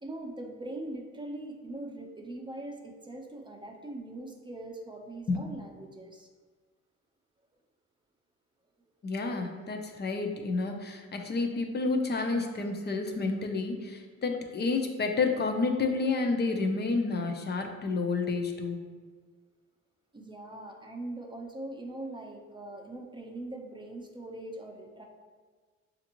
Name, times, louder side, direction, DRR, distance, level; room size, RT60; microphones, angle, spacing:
voice 1, 0.0-6.3 20.1-25.0, right 1 dB, 15° right, 1 dB, 0.7 m, -41 dB
voice 2, 9.0-18.8, left 3 dB, 35° left, 4 dB, 0.6 m, -30 dB
6.3 x 2.6 x 3.0 m, 1.5 s
cardioid pair, 90°, 30 cm